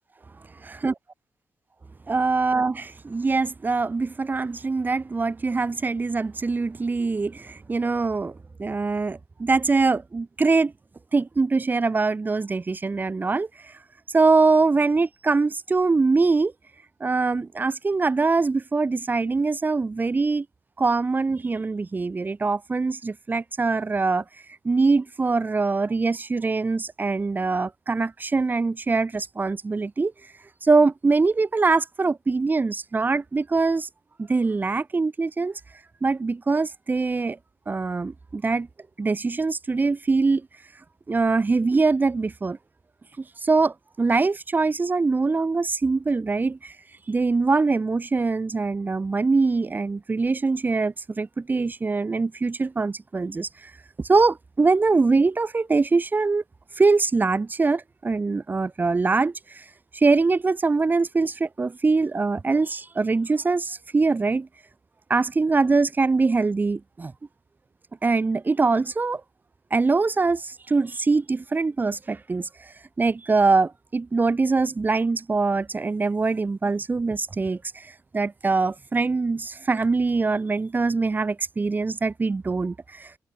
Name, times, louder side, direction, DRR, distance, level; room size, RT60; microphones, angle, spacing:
voice 1, 2.1-8.3 8.6-10.7 11.1-13.7 14.1-16.5 17.0-20.5 20.8-24.2 24.6-30.1 30.6-33.9 34.2-35.6 36.0-37.4 37.7-38.7 39.0-40.5 41.1-42.6 43.2-46.7 47.1-53.7 54.1-56.4 56.8-59.6 59.9-64.5 65.1-67.1 68.0-69.2 69.7-72.7 73.0-83.1, right 3 dB, 30° right, 2.0 m, -23 dB
cardioid pair, 85°, 6 cm